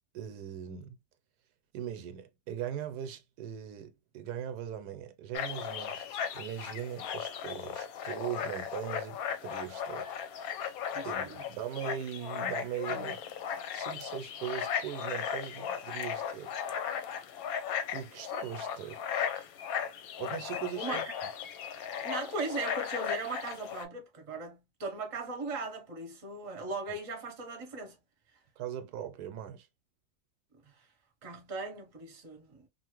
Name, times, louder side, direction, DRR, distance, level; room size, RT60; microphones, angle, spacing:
voice 1, 0.1-1.0 1.7-10.1 11.0-13.2 13.7-16.6 17.9-19.0 20.2-21.0 28.6-29.7, right 10 dB, 80° right, 1.1 m, -40 dB
sound 1, 5.3-23.9, left 8 dB, 70° left, 1.0 m, -36 dB
voice 2, 10.9-11.4 12.9-13.1 20.7-21.0 22.0-28.0 30.6-30.8 31.2-32.7, right 3 dB, 30° right, 0.7 m, -38 dB
2.8 x 2.5 x 2.9 m
omnidirectional pair, 1.7 m